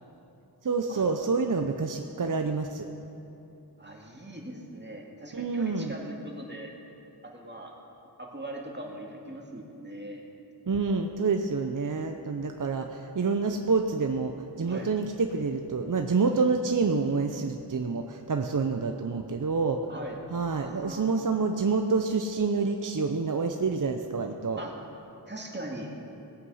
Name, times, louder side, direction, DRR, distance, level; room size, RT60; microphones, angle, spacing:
voice 1, 0.6-2.9 5.3-6.0 10.7-19.8 20.3-24.6, right 4 dB, 50° right, 5 dB, 0.7 m, -27 dB
voice 2, 3.8-6.7 7.2-7.7 8.2-10.2 14.6-14.9 19.9-20.2 20.6-21.4 24.6-24.8 25.3-25.9, right 1 dB, 25° right, -1 dB, 2.2 m, -40 dB
18.5 x 8.4 x 5.6 m, 2.9 s
wide cardioid pair, 55°, 41 cm